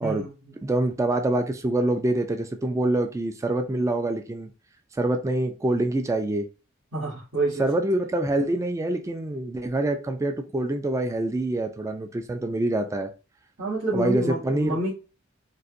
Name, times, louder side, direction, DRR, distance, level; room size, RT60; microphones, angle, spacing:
voice 1, 0.0-0.5 6.9-7.6 13.6-14.9, right 1 dB, 80° right, -9 dB, 1.9 m, -28 dB
voice 2, 0.6-4.5 4.9-6.5 7.6-13.1 13.9-14.8, right 2 dB, 15° right, 6 dB, 0.3 m, -25 dB
3.9 x 2.5 x 2.5 m, 0.31 s
head